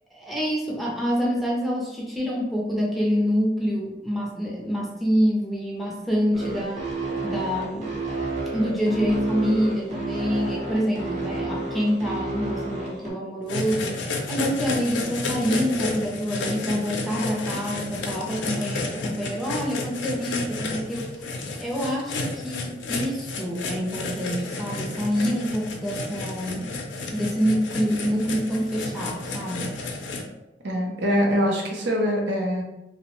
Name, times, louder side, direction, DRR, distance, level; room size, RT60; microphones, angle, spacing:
voice 1, 0.1-6.9 7.2-8.0 8.5-14.0 14.3-21.3 21.6-26.8 27.1-29.8, equal, ahead, -4 dB, 0.4 m, -26 dB
sound 1, 6.3-13.1, right 2 dB, 40° right, 0.7 m, -30 dB
sound 2, 13.5-30.2, left 3 dB, 85° left, 0.4 m, -31 dB
voice 2, 30.6-32.6, equal, 75° right, 0 dB, 0.6 m, -23 dB
2.7 x 2.0 x 2.9 m, 0.96 s
head